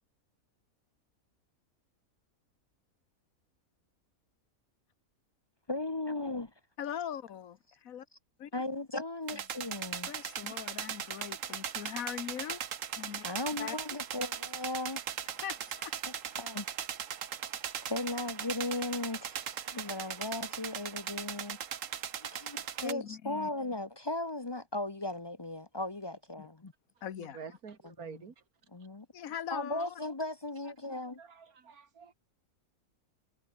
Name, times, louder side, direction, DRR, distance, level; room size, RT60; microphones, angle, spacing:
voice 1, 5.7-6.5 8.5-10.1 10.4-10.5 13.2-15.0 15.3-15.4 16.4-16.7 17.9-21.6 22.2-26.7 28.0-28.2 28.7-29.1 29.5-31.2, left 2 dB, 25° left, 0.6 m, -37 dB
voice 2, 6.8-8.1 8.4-8.5 9.3-9.4 10.1-12.6 12.9-13.2 13.6-13.8 15.4-15.9 22.8-23.5 26.4-26.5 27.0-27.4 29.1-30.0 30.9-31.0, left 9 dB, 75° left, 1.5 m, -41 dB
sound 1, 9.3-22.9, right 8 dB, 65° right, 1.4 m, -39 dB
voice 3, 27.2-28.4 30.6-32.1, right 5 dB, 85° right, 2.4 m, -49 dB
omnidirectional pair, 1.5 m